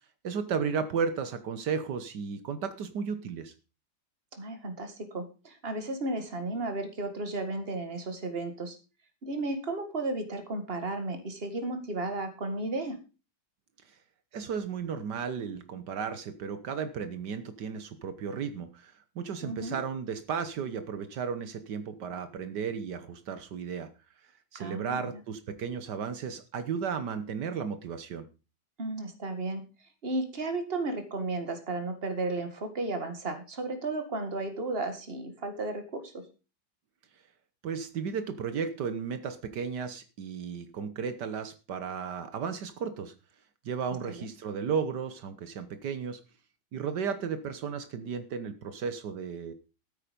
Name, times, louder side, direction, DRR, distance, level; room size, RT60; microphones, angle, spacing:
voice 1, 0.2-3.5 13.8-14.0 14.3-23.9 24.5-28.2 37.6-43.1 43.6-46.2 46.7-49.5, right 6 dB, 75° right, 10 dB, 1.7 m, -34 dB
voice 2, 4.3-8.8 9.2-13.0 19.4-19.8 24.5-25.1 28.8-29.6 30.0-36.3 44.1-44.3, right 2 dB, 35° right, 8 dB, 2.1 m, -34 dB
13.0 x 9.0 x 5.2 m, 0.33 s
omnidirectional pair, 1.8 m